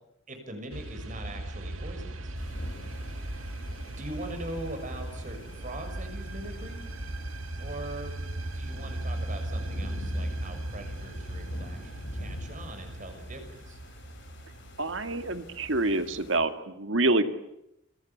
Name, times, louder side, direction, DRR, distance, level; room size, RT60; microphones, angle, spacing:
voice 1, 0.3-2.3 3.8-6.8 7.6-8.1 8.5-13.8, right 1 dB, 40° right, 6 dB, 6.6 m, -41 dB
sound 1, 0.7-16.4, right 1 dB, 90° right, 2.0 m, -38 dB
sound 2, 2.4-16.4, equal, 60° left, 5.5 m, -44 dB
voice 2, 14.8-17.2, right 2 dB, 65° right, 9 dB, 2.1 m, -27 dB
29.5 x 23.0 x 8.6 m, 0.84 s
head